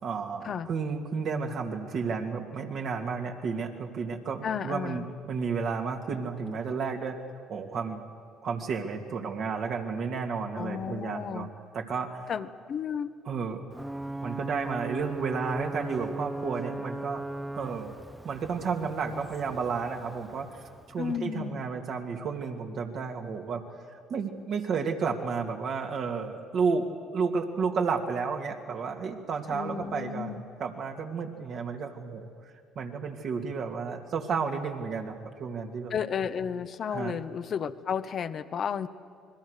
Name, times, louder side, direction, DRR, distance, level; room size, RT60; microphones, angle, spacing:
voice 1, 0.0-5.0 5.3-7.2 7.5-8.0 8.4-11.5 11.7-12.3 13.3-13.6 14.2-17.2 17.5-17.9 18.2-20.5 20.9-23.6 24.1-26.8 27.1-32.3 32.7-35.9 36.9-37.1, right 5 dB, 60° right, 2 dB, 2.7 m, -32 dB
voice 2, 4.4-5.1 10.5-11.5 12.3-13.1 21.0-21.6 29.5-30.4 35.9-38.9, left 7 dB, 50° left, 11 dB, 1.0 m, -33 dB
Ocean / Boat Water vehicle / Alarm, 13.7-21.3, right 1 dB, 10° right, 0.8 m, -38 dB
27.5 x 21.5 x 6.7 m, 2.1 s
hypercardioid pair, 60°, 0 cm